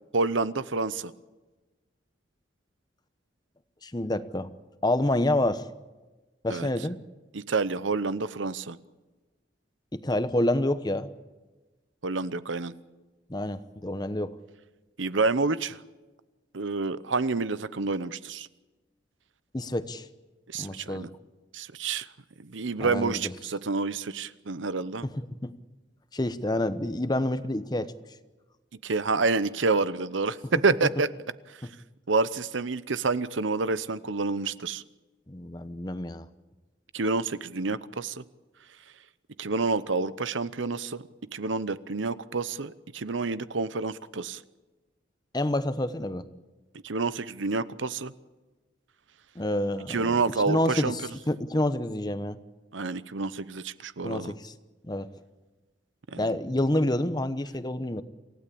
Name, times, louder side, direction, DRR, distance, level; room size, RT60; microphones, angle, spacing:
voice 1, 0.1-1.1 6.5-6.7 7.3-8.8 12.0-12.7 15.0-15.8 16.5-18.5 20.5-21.1 21.5-22.1 22.4-25.1 28.8-31.1 31.5-31.6 32.1-34.8 36.9-38.2 39.4-41.0 41.3-44.4 46.8-48.1 49.9-50.9 52.7-54.3 56.1-56.3, right 3 dB, 90° right, 15 dB, 0.9 m, -28 dB
voice 2, 3.8-4.5 4.8-5.6 6.4-7.0 9.9-11.1 13.3-14.3 19.5-20.1 20.6-21.1 22.8-23.3 25.2-25.6 26.1-27.9 31.6-31.7 35.3-36.2 45.3-46.2 49.3-50.2 50.5-51.0 51.3-52.4 54.0-54.5 54.8-55.1 56.2-58.0, left 1 dB, 20° left, 12 dB, 0.9 m, -28 dB
27.5 x 16.0 x 8.5 m, 1.2 s
head